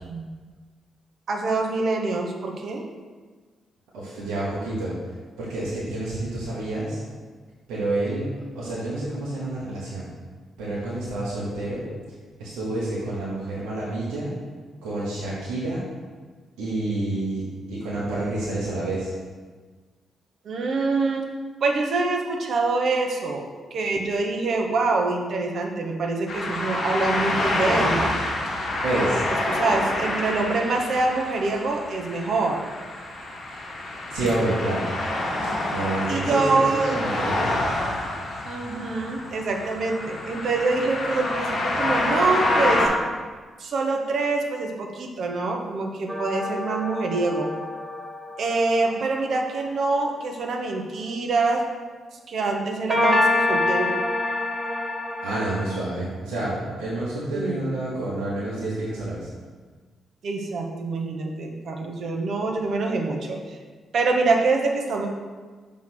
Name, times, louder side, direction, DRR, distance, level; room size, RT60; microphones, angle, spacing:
voice 1, 1.3-2.8 20.4-21.2 21.6-23.4 23.7-28.1 29.0-29.1 29.5-32.7 36.1-37.0 38.4-42.9 43.6-47.5 48.4-51.6 52.1-53.9 57.3-57.7 60.2-63.6 63.9-65.1, right 3 dB, 65° right, 2 dB, 1.0 m, -25 dB
voice 2, 3.9-4.9 5.4-7.0 7.7-8.3 8.5-10.1 10.6-11.8 12.4-14.3 14.8-15.8 16.6-17.4 17.7-19.1 28.8-29.3 34.1-34.9 35.7-37.6 55.2-59.3, right 2 dB, 80° right, -7 dB, 1.3 m, -28 dB
sound 1, 26.3-42.9, left 1 dB, 60° left, 1.7 m, -27 dB
sound 2, 46.1-49.6 52.9-55.7, left 2 dB, ahead, 1.5 m, -26 dB
5.8 x 3.7 x 6.0 m, 1.4 s
hypercardioid pair, 45°, 0 cm